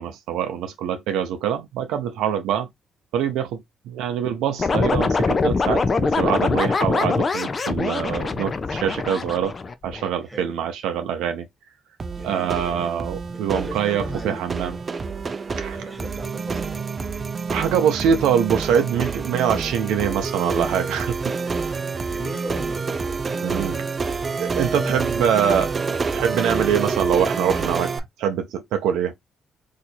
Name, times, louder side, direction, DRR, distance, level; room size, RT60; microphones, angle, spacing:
voice 1, 0.0-2.7 3.1-9.5 9.8-11.5 12.2-14.8 15.6-15.8 17.5-21.3 23.4-23.9 24.4-25.7 26.1-27.9 28.2-29.1, right 8 dB, 90° right, 0.6 m, -24 dB
sound 1, 4.6-10.1, left 4 dB, 35° left, 0.5 m, -23 dB
voice 2, 10.2-10.5 12.1-12.9 13.5-14.5 15.7-16.7 22.1-22.8 24.7-25.6, equal, 20° right, 1.4 m, -36 dB
sound 2, 12.0-28.0, right 4 dB, 35° right, 0.5 m, -28 dB
2.8 x 2.5 x 4.3 m
cardioid pair, 90°, 0 cm